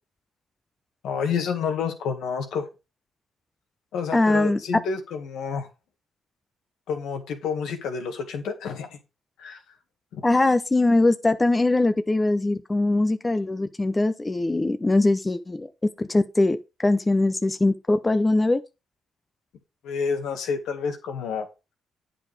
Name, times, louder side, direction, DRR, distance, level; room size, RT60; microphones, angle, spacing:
voice 1, 1.0-2.7 3.9-5.7 6.9-9.0 9.4-9.6 10.1-10.3 19.8-21.5, left 6 dB, 80° left, 1.9 m, -29 dB
voice 2, 4.1-4.6 10.2-15.7 16.0-16.6 16.8-18.6, left 2 dB, 20° left, 0.7 m, -21 dB
8.8 x 4.9 x 4.8 m
cardioid pair, 90°, 0 cm